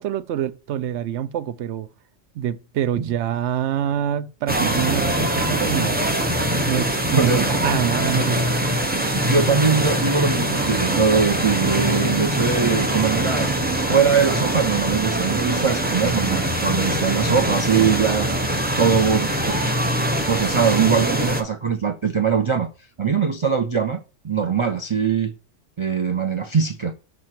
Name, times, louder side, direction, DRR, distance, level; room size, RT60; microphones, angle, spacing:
voice 1, 0.0-1.9 2.3-6.3 6.7-7.3 7.6-8.5 16.8-17.4, right 10 dB, 70° right, 0.8 m, -26 dB
sound 1, 4.5-21.4, right 1 dB, 10° right, 0.7 m, -23 dB
voice 2, 7.1-7.5 9.2-13.5 13.8-19.3 20.3-22.7 23.0-25.3 25.8-26.9, right 6 dB, 45° right, 0.4 m, -21 dB
6.3 x 4.1 x 4.3 m
omnidirectional pair, 1.3 m